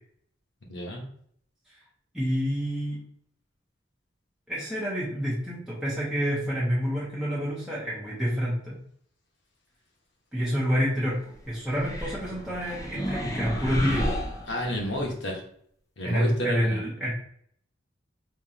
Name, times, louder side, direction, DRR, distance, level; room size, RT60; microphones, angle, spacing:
voice 1, 0.7-1.0 14.5-15.4 16.0-16.8, left 1 dB, 65° left, -1 dB, 1.1 m, -30 dB
voice 2, 2.1-3.0 4.5-8.8 10.3-14.1 16.0-17.1, equal, 5° right, -8 dB, 0.9 m, -28 dB
sound 1, 11.7-15.1, equal, 15° left, 0.5 m, -32 dB
3.6 x 3.0 x 2.8 m, 0.63 s
head